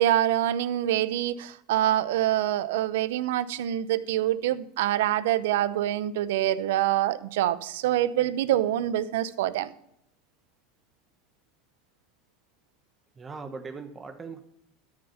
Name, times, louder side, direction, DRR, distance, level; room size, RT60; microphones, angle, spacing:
voice 1, 0.0-9.7, right 12 dB, 80° right, 16 dB, 0.7 m, -25 dB
voice 2, 13.2-14.4, right 4 dB, 25° right, 7 dB, 1.1 m, -39 dB
13.0 x 6.6 x 5.7 m, 0.77 s
supercardioid pair, 110°, 0 cm